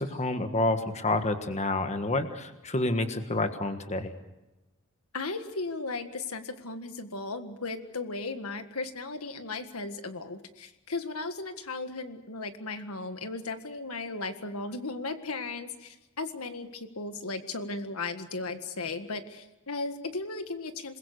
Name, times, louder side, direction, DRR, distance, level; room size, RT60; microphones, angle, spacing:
voice 1, 0.0-4.1, left 2 dB, 30° left, 8 dB, 1.5 m, -29 dB
voice 2, 5.1-21.0, left 3 dB, 75° left, 8 dB, 1.8 m, -36 dB
27.5 x 21.0 x 6.8 m, 0.98 s
head